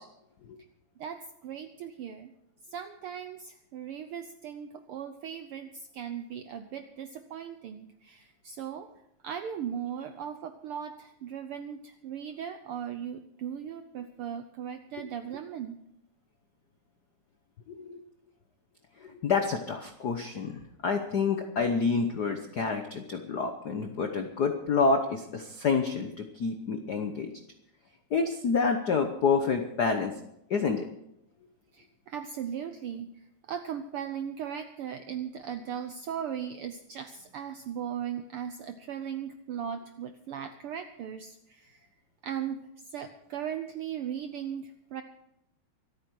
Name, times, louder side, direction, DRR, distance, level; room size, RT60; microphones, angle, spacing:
voice 1, 1.0-2.3 2.7-8.9 9.2-15.8 31.7-33.1 33.4-41.9 42.2-45.0, right 8 dB, 80° right, 8 dB, 1.2 m, -38 dB
voice 2, 17.7-18.0 19.0-27.3 28.1-30.1 30.5-30.8, left 5 dB, 90° left, 6 dB, 0.8 m, -28 dB
24.5 x 9.1 x 4.7 m, 0.80 s
omnidirectional pair, 3.3 m